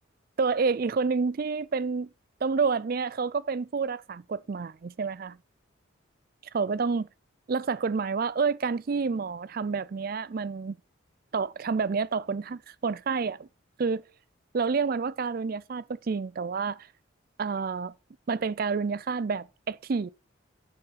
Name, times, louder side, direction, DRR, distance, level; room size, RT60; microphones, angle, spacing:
voice 1, 0.4-2.1 2.4-5.4 6.5-7.1 7.5-10.8 11.3-13.5 13.8-14.0 14.5-16.9 17.4-17.9 18.3-20.1, right 5 dB, 45° right, 0.4 m, -29 dB
7.8 x 7.0 x 5.8 m
head